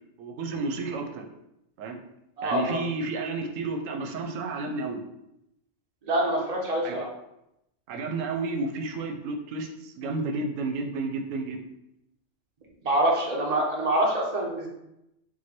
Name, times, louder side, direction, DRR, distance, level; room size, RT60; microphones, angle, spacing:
voice 1, 0.2-1.2 1.8-2.0 2.4-5.0 6.8-7.0 7.9-11.6, right 3 dB, 90° right, 5 dB, 0.9 m, -31 dB
voice 2, 2.4-2.8 6.0-7.1 12.8-14.7, right 1 dB, 35° right, -2 dB, 0.9 m, -25 dB
4.7 x 2.2 x 4.2 m, 0.84 s
omnidirectional pair, 1.3 m